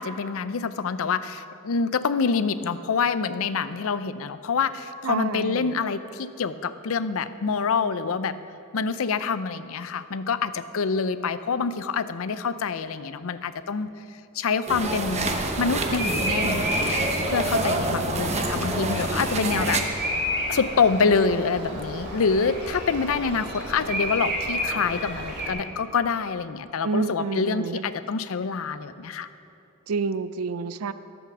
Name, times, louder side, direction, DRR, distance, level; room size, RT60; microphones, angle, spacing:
voice 1, 0.0-8.4 8.7-13.9 14.3-15.3 15.6-20.1 20.5-29.3, left 5 dB, 70° left, 13 dB, 0.5 m, -26 dB
voice 2, 5.0-5.8 26.8-27.9 29.9-30.9, right 4 dB, 80° right, 14 dB, 0.5 m, -28 dB
sound 1, 14.7-19.8, right 2 dB, 30° right, 1.0 m, -27 dB
Bird vocalization bird call bird song, 15.1-25.5, equal, 55° right, 3.0 m, -31 dB
14.0 x 8.1 x 6.1 m, 2.6 s
head